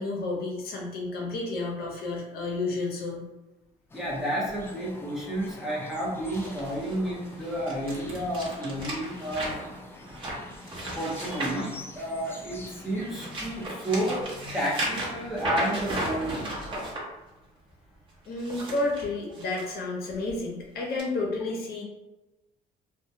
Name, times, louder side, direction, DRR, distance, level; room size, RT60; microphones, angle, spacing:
voice 1, 0.0-3.3 18.3-21.8, left 2 dB, 65° left, -1 dB, 0.7 m, -31 dB
sound 1, 3.9-13.7, left 2 dB, 15° left, 0.3 m, -46 dB
voice 2, 3.9-9.5 11.0-16.9, right 1 dB, ahead, -6 dB, 0.7 m, -31 dB
sound 2, 6.3-12.5 12.9-17.0 18.2-19.7 20.1-20.3 21.0-21.1, right 1 dB, 30° right, 0.9 m, -35 dB
2.2 x 2.1 x 2.7 m, 1.0 s
cardioid pair, 110°, 17 cm